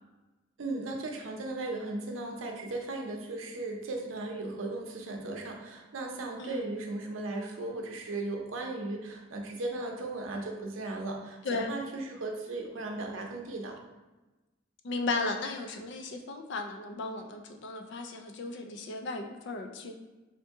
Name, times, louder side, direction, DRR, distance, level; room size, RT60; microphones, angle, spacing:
voice 1, 0.6-13.8, right 2 dB, 85° right, 2 dB, 0.6 m, -36 dB
voice 2, 6.4-6.8 11.4-11.7 14.8-19.9, left 3 dB, 60° left, 4 dB, 0.4 m, -35 dB
3.6 x 2.6 x 3.5 m, 1.1 s
head